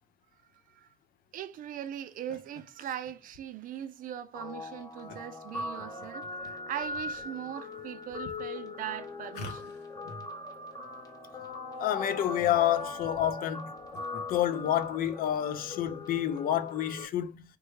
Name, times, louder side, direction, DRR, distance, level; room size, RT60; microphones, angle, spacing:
voice 1, 1.3-9.7, right 10 dB, 55° right, 0.5 m, -40 dB
sound 1, 2.0-2.6 3.0-3.1 3.7-3.9 5.1-5.2 5.5-6.5 7.0-7.5 8.1-8.2 9.3-10.3 10.5-10.6 10.8-10.9 11.4-11.5 11.7-13.1 13.7-14.2, left 2 dB, 85° left, 0.8 m, -47 dB
Guitar, 4.3-17.1, left 3 dB, 20° left, 0.9 m, -40 dB
voice 2, 11.8-13.7 14.3-17.4, left 11 dB, 60° left, 0.4 m, -28 dB
3.3 x 2.1 x 3.1 m
cardioid pair, 110°, 17 cm